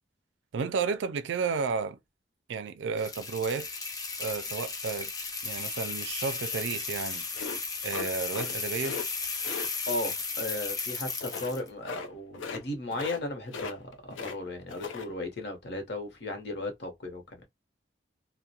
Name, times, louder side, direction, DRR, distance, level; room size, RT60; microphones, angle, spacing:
voice 1, 0.5-2.0 2.5-3.7 4.2-5.1 5.4-7.3 7.8-9.0, right 5 dB, 70° right, 0.3 m, -32 dB
sound 1, 3.0-11.7, left 4 dB, 20° left, 0.4 m, -35 dB
sound 2, 7.3-8.5 8.8-9.1 9.4-9.7 11.2-11.5 11.8-12.1 12.3-12.6 12.9-13.2 13.5-14.4 14.7-15.1, left 5 dB, 85° left, 0.5 m, -38 dB
voice 2, 9.9-17.4, left 2 dB, 60° left, 0.9 m, -36 dB
2.3 x 2.1 x 2.7 m
head